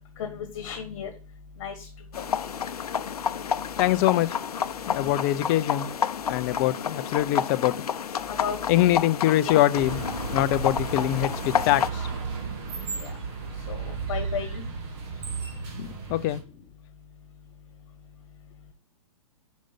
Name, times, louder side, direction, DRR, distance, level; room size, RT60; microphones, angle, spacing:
voice 1, 0.2-1.1 1.6-1.7 2.2-2.3 5.0-5.2 8.3-8.6 9.3-9.6 13.0-13.1 13.7-14.6, left 7 dB, 45° left, 1.4 m, -34 dB
sound 1, 2.1-11.9, left 8 dB, 80° left, 0.5 m, -30 dB
voice 2, 3.8-4.3 4.9-5.9 6.3-7.7 8.7-10.0 10.3-12.1 15.8-16.4, left 14 dB, 30° left, 0.4 m, -23 dB
sound 2, 9.7-16.4, right 5 dB, 40° right, 1.7 m, -34 dB
5.3 x 5.2 x 5.1 m
hypercardioid pair, 130°, 19 cm